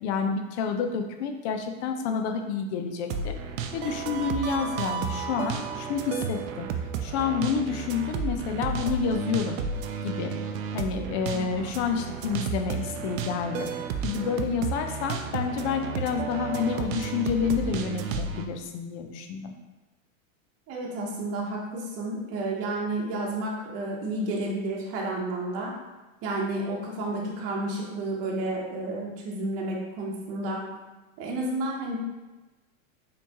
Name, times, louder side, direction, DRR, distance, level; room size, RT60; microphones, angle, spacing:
voice 1, 0.0-3.3 3.7-6.7 7.0-9.6 10.0-10.3 10.7-13.7 14.0-19.6, left 6 dB, 55° left, 5 dB, 0.7 m, -29 dB
sound 1, 3.1-18.5, right 6 dB, 75° right, 0.6 m, -32 dB
voice 2, 20.7-25.7 26.2-30.6 31.2-32.0, right 2 dB, 35° right, -3 dB, 0.9 m, -31 dB
4.2 x 3.2 x 2.9 m, 1.1 s
supercardioid pair, 120°, 40 cm